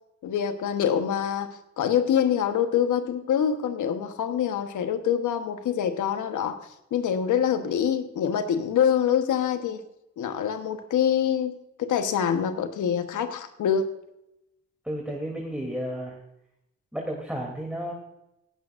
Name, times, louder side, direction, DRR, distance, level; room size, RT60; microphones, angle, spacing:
voice 1, 0.2-1.5 1.8-6.6 6.9-9.8 10.2-13.9, left 8 dB, 75° left, 9 dB, 1.2 m, -25 dB
voice 2, 14.8-16.2 16.9-17.9, equal, 5° right, 0 dB, 3.0 m, -32 dB
17.0 x 11.0 x 2.6 m, 0.85 s
supercardioid pair, 45°, 30 cm